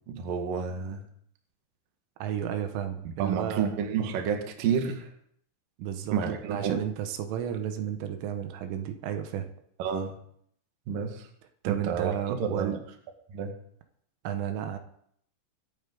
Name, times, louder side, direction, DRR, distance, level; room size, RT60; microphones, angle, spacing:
voice 1, 0.1-1.0 3.2-5.1 6.1-6.8 9.8-10.1 10.9-11.3 11.6-12.8 13.3-13.5, right 6 dB, 55° right, 3 dB, 2.8 m, -30 dB
voice 2, 2.2-3.7 5.8-9.5 11.6-12.8 14.3-14.8, right 9 dB, 80° right, 7 dB, 3.6 m, -32 dB
25.0 x 8.9 x 3.9 m, 0.68 s
omnidirectional pair, 5.8 m